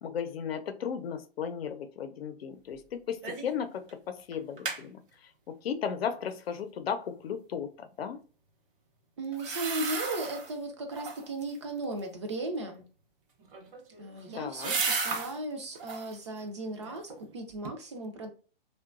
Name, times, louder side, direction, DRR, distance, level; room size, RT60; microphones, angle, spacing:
voice 1, 0.0-5.0 5.6-8.2 14.3-14.7, left 7 dB, 85° left, 0.6 m, -35 dB
sound 1, 3.2-3.6 3.9-4.0 4.3-4.8 9.3-10.5 10.9-11.4 13.4-15.3 15.7-16.2 16.7-17.3 17.6-17.7, right 4 dB, 60° right, 0.8 m, -34 dB
voice 2, 9.2-12.8 14.0-18.3, right 2 dB, 30° right, 0.4 m, -36 dB
2.9 x 2.2 x 2.4 m
hypercardioid pair, 165°, 29 cm